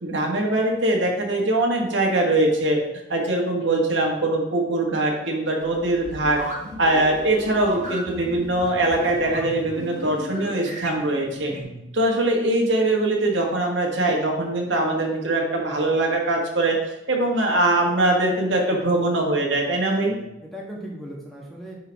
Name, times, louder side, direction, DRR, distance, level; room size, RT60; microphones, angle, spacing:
voice 1, 0.0-2.8 3.1-6.4 6.8-11.5 11.9-16.8 17.1-20.2, right 2 dB, 80° right, 0 dB, 1.6 m, -22 dB
sound 1, 5.6-11.6, equal, 40° right, 1.5 m, -35 dB
voice 2, 11.4-11.9 20.1-21.8, right 1 dB, ahead, -3 dB, 1.4 m, -38 dB
10.5 x 4.7 x 3.5 m, 0.93 s
head